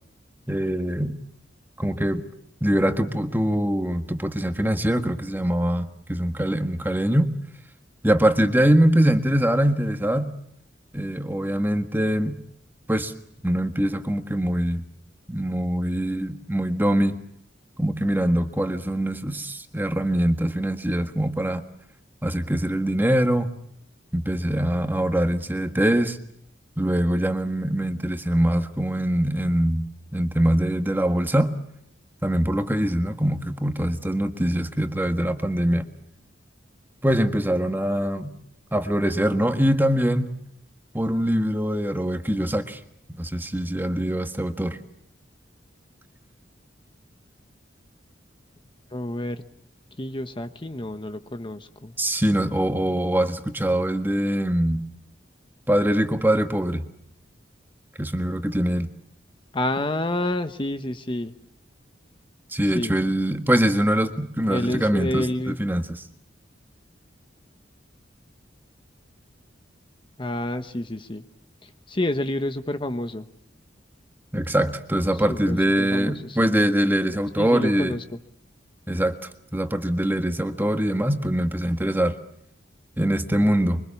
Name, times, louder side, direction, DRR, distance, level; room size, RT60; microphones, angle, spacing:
voice 1, 0.5-1.2 1.8-2.2 2.6-7.3 8.0-10.3 10.9-12.4 12.9-13.1 13.4-14.8 15.3-17.1 17.8-21.6 22.2-23.5 24.1-26.2 26.8-29.8 30.1-31.5 32.2-35.9 37.0-38.3 38.7-40.3 40.9-42.8 43.1-44.8 52.0-54.8 55.7-56.8 58.0-58.9 62.5-65.8 74.3-78.0 78.9-79.2 79.5-82.2 83.0-83.8, right 1 dB, 10° right, 7 dB, 1.6 m, -23 dB
voice 2, 48.9-49.4 50.0-51.9 59.5-61.3 62.7-63.0 64.5-65.6 70.2-71.2 71.6-73.3 75.3-76.5 77.4-78.0, left 1 dB, 25° left, 8 dB, 1.1 m, -29 dB
25.5 x 24.5 x 7.2 m, 0.71 s
head